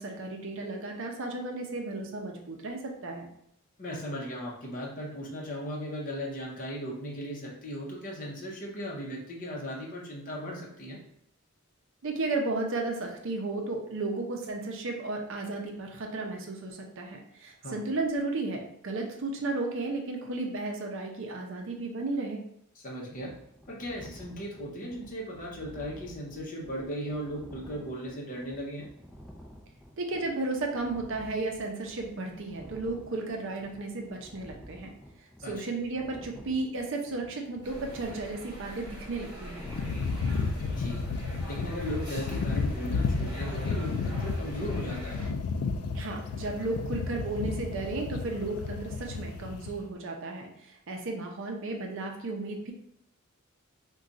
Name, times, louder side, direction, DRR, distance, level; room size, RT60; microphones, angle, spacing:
voice 1, 0.0-3.3 12.0-22.4 30.0-34.9 35.5-39.7 45.9-52.7, right 3 dB, 60° right, 2 dB, 0.6 m, -34 dB
voice 2, 3.8-11.0 17.6-17.8 22.8-23.3 23.7-28.9 35.4-35.6 40.6-41.0 41.5-45.2, equal, 40° left, -3 dB, 0.7 m, -37 dB
sound 1, 23.0-41.2, equal, ahead, 0.5 m, -51 dB
sound 2, 37.6-45.3, equal, 20° right, 1.0 m, -44 dB
sound 3, 39.6-49.8, left 4 dB, 90° left, 0.3 m, -32 dB
2.4 x 2.3 x 3.9 m, 0.73 s
head